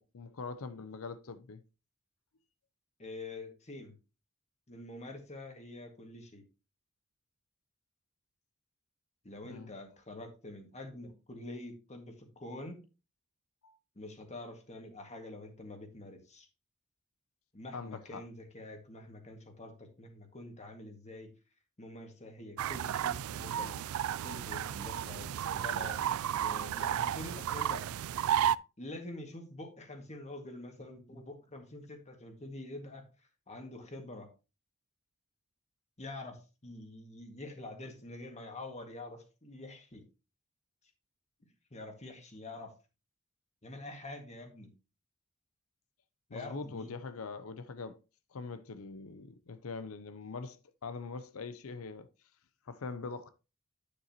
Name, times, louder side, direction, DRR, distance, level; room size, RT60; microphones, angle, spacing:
voice 1, 0.1-1.6 9.4-9.7 13.6-13.8 17.7-18.2 46.3-48.0 48.3-52.1 52.7-53.3, left 4 dB, 75° left, 0.6 m, -43 dB
voice 2, 3.0-3.9 4.7-6.4 9.2-12.8 14.0-16.5 17.5-21.3 21.8-26.0 26.4-27.9 28.8-33.0 33.5-34.3 36.0-40.0 41.7-42.7 43.6-44.7 46.3-46.9, left 2 dB, 35° left, 1.9 m, -46 dB
sound 1, 22.6-28.6, right 10 dB, 80° right, 0.3 m, -33 dB
9.4 x 6.8 x 2.9 m
head